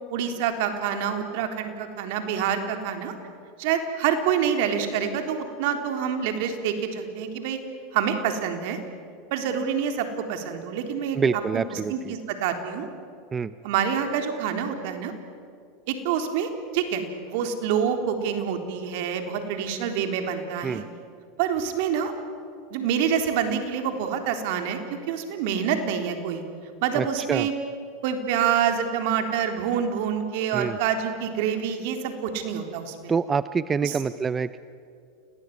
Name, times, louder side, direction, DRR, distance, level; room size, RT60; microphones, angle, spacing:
voice 1, 0.1-3.1 3.6-7.6 7.9-8.8 9.3-11.2 11.5-12.9 13.6-15.1 15.9-20.8 21.4-22.1 22.7-26.4 26.8-27.5 28.0-33.1 33.8-34.0, right 8 dB, 65° right, 6 dB, 3.7 m, -27 dB
voice 2, 11.1-12.1 13.3-13.5 20.6-20.8 26.9-27.5 30.5-30.8 33.1-34.6, right 5 dB, 20° right, 15 dB, 0.6 m, -26 dB
29.0 x 19.0 x 9.5 m, 2.5 s
hypercardioid pair, 110°, 0 cm